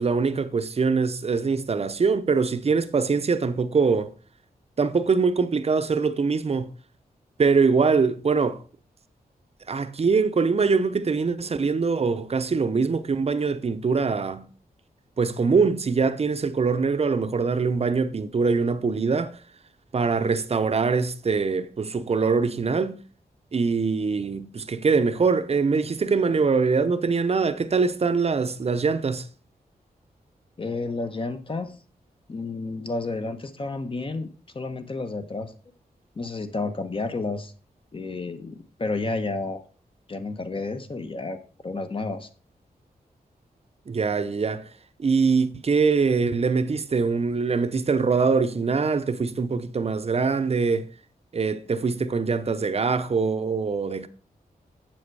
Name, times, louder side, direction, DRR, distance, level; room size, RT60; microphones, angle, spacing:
voice 1, 0.0-4.1 4.8-6.7 7.4-8.6 9.7-14.5 15.2-19.4 19.9-23.0 23.5-29.3 43.9-44.7 45.0-50.9 51.3-54.1, right 4 dB, 40° right, 0.7 m, -23 dB
voice 2, 30.6-31.8 32.3-34.3 34.5-35.5 36.1-37.5 37.9-39.6 40.1-42.3, left 3 dB, 35° left, 1.1 m, -31 dB
7.6 x 7.5 x 4.7 m
wide cardioid pair, 130°, 15 cm